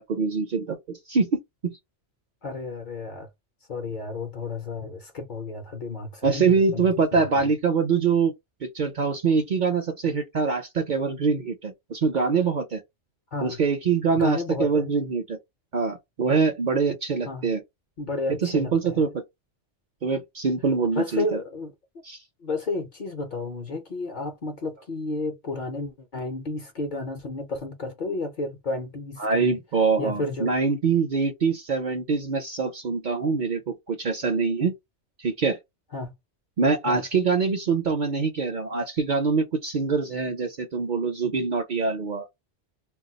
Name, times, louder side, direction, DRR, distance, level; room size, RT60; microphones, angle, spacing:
voice 1, 0.0-1.8 6.2-8.3 8.6-12.8 13.4-15.4 15.7-17.6 18.4-19.1 20.0-21.4 22.0-22.2 29.2-34.7 35.2-35.6 36.6-42.3, right 5 dB, 55° right, 0.6 m, -24 dB
voice 2, 2.4-3.3 3.7-7.5 13.3-13.6 14.2-14.9 17.2-17.5 18.0-19.1 20.9-21.7 22.4-29.6 30.0-30.5 35.9-36.1 36.9-37.0, left 3 dB, 50° left, 0.6 m, -32 dB
2.3 x 2.3 x 3.9 m
omnidirectional pair, 1.2 m